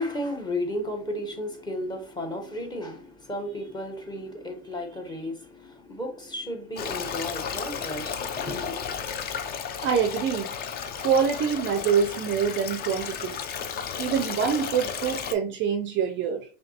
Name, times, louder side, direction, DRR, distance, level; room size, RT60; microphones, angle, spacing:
voice 1, 0.0-9.0, left 1 dB, 10° left, 1.0 m, -33 dB
Stream, 6.8-15.3, left 7 dB, 30° left, 0.4 m, -33 dB
voice 2, 9.8-10.5 11.0-13.4 14.0-16.4, right 7 dB, 35° right, 0.5 m, -25 dB
5.6 x 2.8 x 2.8 m
supercardioid pair, 110°, 34 cm